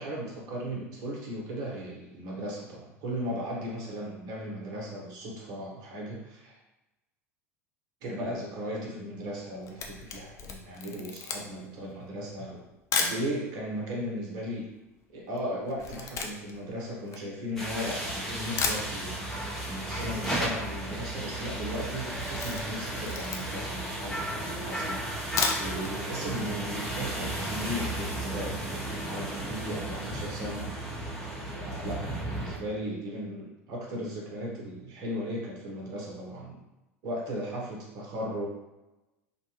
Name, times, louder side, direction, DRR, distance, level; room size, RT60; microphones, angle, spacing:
voice 1, 0.0-6.6 8.0-12.6 12.9-14.7 15.1-19.2 19.6-25.0 25.6-28.6 29.0-30.7 31.5-36.6 37.0-38.5, equal, 50° right, -2 dB, 0.9 m, -36 dB
Camera, 9.4-13.2 13.9-14.0 14.2-17.9 18.3-18.4 18.6-19.4 19.7-19.8 20.1-20.2 20.4-20.8 21.1-21.4 21.7-23.7 24.2-24.3 25.1-25.9 26.3-26.4 26.7-26.8, left 5 dB, 40° left, 0.4 m, -34 dB
sound 1, 17.6-32.6, right 1 dB, 5° left, 0.7 m, -34 dB
2.6 x 2.2 x 2.9 m, 1.0 s
figure-of-eight pair, 75°, 8 cm